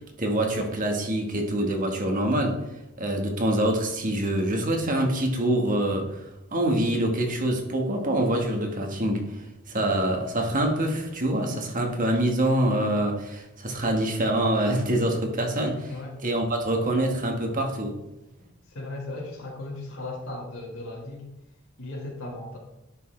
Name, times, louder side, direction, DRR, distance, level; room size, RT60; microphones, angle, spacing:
voice 1, 0.2-2.6 3.0-15.9 16.2-17.9, right 1 dB, 40° right, 2 dB, 1.4 m, -25 dB
voice 2, 18.7-21.3 21.8-22.6, left 2 dB, 70° left, -3 dB, 1.6 m, -36 dB
10.5 x 6.2 x 3.3 m, 0.92 s
head